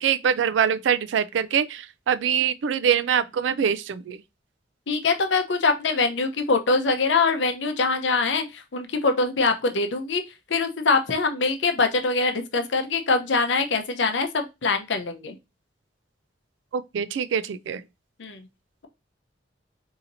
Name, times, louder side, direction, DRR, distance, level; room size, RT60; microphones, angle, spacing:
voice 1, 0.0-4.2 16.7-17.8, right 8 dB, 90° right, 0.3 m, -24 dB
voice 2, 4.9-10.2 10.5-15.4 18.2-18.4, left 4 dB, 90° left, 0.7 m, -23 dB
4.1 x 2.8 x 2.5 m
head